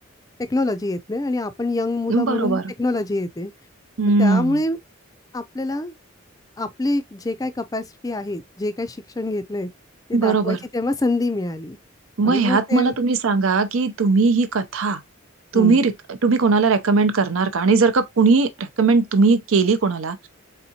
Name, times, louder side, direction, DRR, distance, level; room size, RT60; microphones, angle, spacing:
voice 1, 0.5-3.5 4.2-4.8 5.3-5.9 6.6-9.7 10.1-11.8 12.2-12.9 15.5-15.8, left 2 dB, 15° left, 0.4 m, -25 dB
voice 2, 2.1-2.6 4.0-4.6 10.1-10.6 12.2-15.0 15.5-20.3, right 4 dB, 80° right, 0.6 m, -19 dB
4.2 x 3.6 x 2.8 m
head